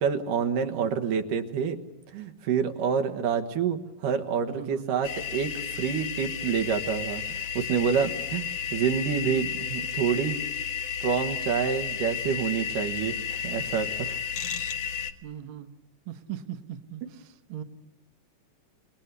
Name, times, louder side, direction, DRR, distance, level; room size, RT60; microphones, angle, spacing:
voice 1, 0.0-1.8 2.1-10.4 11.0-14.2, right 7 dB, 75° right, 7 dB, 3.0 m, -28 dB
voice 2, 4.5-4.9 15.2-15.7 16.0-17.6, right 10 dB, 50° right, 7 dB, 1.7 m, -39 dB
sound 1, 5.0-15.1, left 7 dB, 55° left, 2.1 m, -33 dB
29.5 x 20.0 x 8.2 m, 0.96 s
omnidirectional pair, 3.8 m